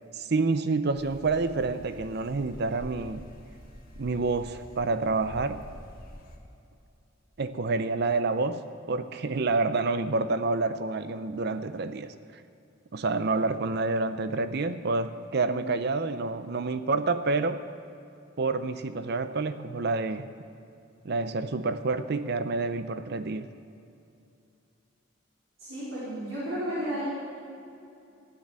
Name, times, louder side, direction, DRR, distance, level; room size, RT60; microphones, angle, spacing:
voice 1, 0.1-3.3 4.0-5.6 7.4-8.6 8.9-12.1 12.9-17.6 18.4-20.3 21.0-23.5, right 3 dB, 55° right, 11 dB, 0.6 m, -28 dB
sound 1, 0.9-6.4, equal, 50° left, 2.0 m, -47 dB
voice 2, 25.6-27.1, equal, 85° right, -9 dB, 4.4 m, -33 dB
15.0 x 9.8 x 7.5 m, 2.6 s
head